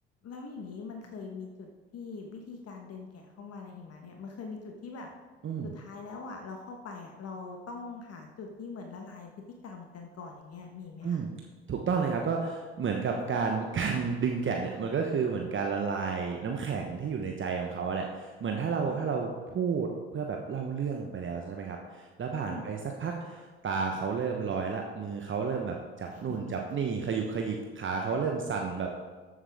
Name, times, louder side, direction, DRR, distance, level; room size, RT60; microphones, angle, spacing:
voice 1, 0.2-5.1 5.6-9.3 9.6-11.2 18.9-19.0 22.4-22.7 26.1-26.6, left 4 dB, 45° left, 3 dB, 1.4 m, -43 dB
voice 2, 11.7-28.9, right 5 dB, 40° right, 2 dB, 1.2 m, -31 dB
13.5 x 7.3 x 3.6 m, 1.3 s
figure-of-eight pair, 50°, 32 cm